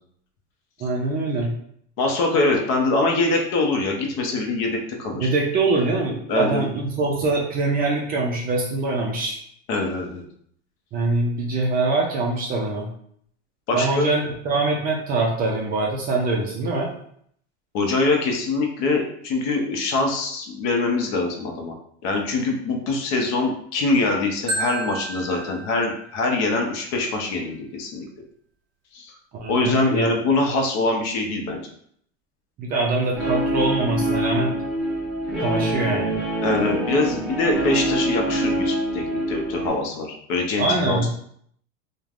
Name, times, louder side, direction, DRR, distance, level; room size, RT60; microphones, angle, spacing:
voice 1, 0.8-1.5 5.1-9.4 10.9-12.9 13.7-16.9 29.3-30.1 32.6-34.5 35.4-36.2 40.6-41.1, right 3 dB, 25° right, -1 dB, 0.4 m, -23 dB
voice 2, 2.0-5.3 6.3-6.7 9.7-10.2 13.7-14.1 17.7-21.7 22.0-28.1 28.9-29.1 29.5-31.7 36.4-41.1, left 3 dB, 50° left, 2 dB, 0.7 m, -23 dB
Marimba xylophone, 24.5-26.6, right 2 dB, 45° right, 0.7 m, -31 dB
Guitar, 33.2-39.7, right 1 dB, ahead, 0.8 m, -25 dB
3.1 x 2.1 x 2.4 m, 0.66 s
supercardioid pair, 130°, 34 cm